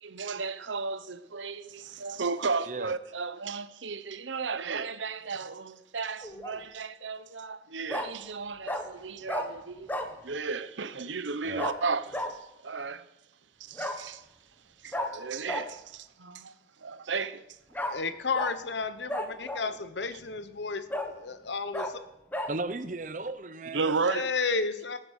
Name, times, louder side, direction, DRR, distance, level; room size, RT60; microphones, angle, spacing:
voice 1, 0.0-13.1 13.6-14.2 14.8-17.4 23.7-24.3, right 4 dB, 85° right, 0.9 m, -34 dB
Bark, 6.2-6.6 7.9-8.1 8.7-8.8 9.3-9.5 9.9-10.1 11.6-11.8 12.1-12.3 13.8-14.0 14.9-15.1 15.5-15.6 17.7-17.9 18.3-18.5 19.1-19.7 20.2-20.3 20.9-21.1 21.7-21.9 22.3-22.5, left 1 dB, 10° left, 1.2 m, -32 dB
voice 2, 17.9-22.0 24.0-25.0, left 4 dB, 75° left, 1.1 m, -32 dB
voice 3, 22.4-24.0, right 2 dB, 40° right, 0.8 m, -35 dB
18.5 x 9.4 x 6.4 m
head